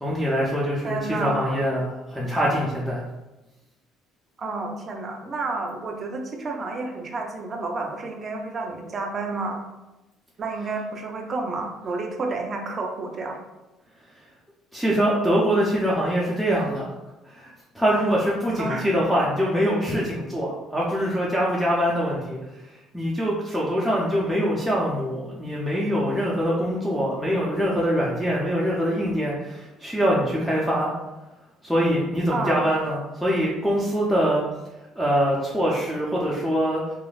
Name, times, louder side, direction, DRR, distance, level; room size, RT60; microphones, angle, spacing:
voice 1, 0.0-3.0 14.7-16.9 17.3-22.4 22.9-30.9 31.6-34.4 35.0-36.8, equal, ahead, -5 dB, 0.6 m, -24 dB
voice 2, 0.8-1.6 4.4-9.6 10.4-13.4 18.6-18.9 32.3-32.6, right 3 dB, 45° right, 2 dB, 0.6 m, -30 dB
3.0 x 2.4 x 2.4 m, 1.0 s
hypercardioid pair, 65°, 0 cm